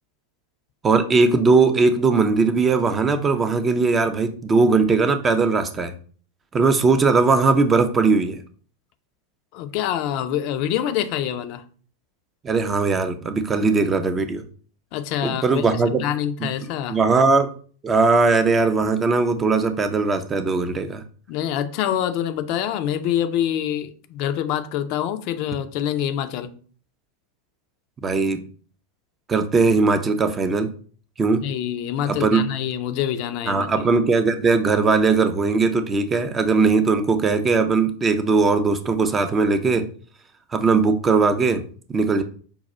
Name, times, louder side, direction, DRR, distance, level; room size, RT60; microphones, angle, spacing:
voice 1, 0.8-5.9 6.5-8.4 12.4-14.4 15.2-16.0 16.4-16.5 16.9-17.5 17.8-21.0 28.0-28.4 29.3-30.7 31.2-31.4 32.1-32.4 33.5-39.9 40.5-41.6 41.9-42.2, right 4 dB, 20° right, 0.5 m, -19 dB
voice 2, 9.5-11.6 14.9-15.6 16.0-17.0 21.3-26.5 31.4-33.7, left 10 dB, 45° left, 0.5 m, -25 dB
5.3 x 2.3 x 4.1 m
figure-of-eight pair, 90°, 0 cm